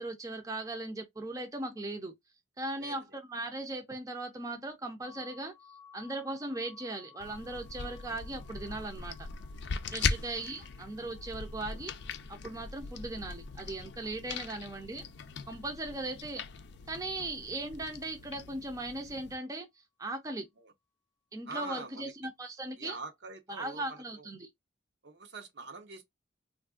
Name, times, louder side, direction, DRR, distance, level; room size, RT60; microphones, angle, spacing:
voice 1, 0.0-2.1 2.6-5.5 5.9-9.3 9.9-11.9 12.3-15.1 15.5-16.4 16.9-19.7 20.0-20.5 21.3-23.0 23.5-24.5, right 2 dB, 20° right, 0.6 m, -38 dB
sound 1, 5.0-16.7, left 6 dB, 90° right, 0.9 m, -60 dB
sound 2, 7.2-19.4, left 5 dB, 65° left, 0.4 m, -40 dB
voice 2, 21.5-22.1 22.8-24.3 25.0-26.0, right 3 dB, 65° right, 0.7 m, -45 dB
3.4 x 2.5 x 2.3 m
head